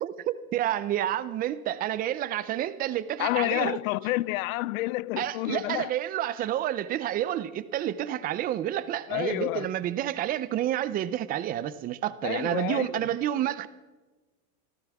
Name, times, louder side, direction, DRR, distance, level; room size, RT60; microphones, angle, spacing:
voice 1, 0.0-3.8 5.2-13.7, right 12 dB, 20° right, 0.4 m, -29 dB
voice 2, 3.2-5.9 9.1-9.7 12.2-13.0, left 19 dB, 65° left, 0.5 m, -29 dB
26.0 x 15.5 x 3.5 m
supercardioid pair, 145°, 45 cm